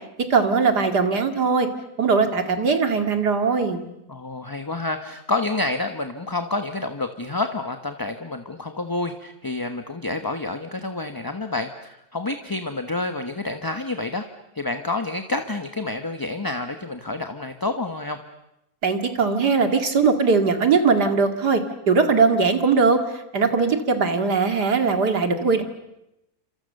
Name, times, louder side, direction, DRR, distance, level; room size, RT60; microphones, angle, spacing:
voice 1, 0.3-1.7 2.0-3.8 18.8-23.0 23.3-25.6, right 4 dB, 85° right, 6 dB, 2.9 m, -20 dB
voice 2, 4.1-14.2 14.5-18.2, left 2 dB, 15° left, 7 dB, 1.1 m, -28 dB
29.5 x 26.5 x 6.7 m, 0.87 s
omnidirectional pair, 1.7 m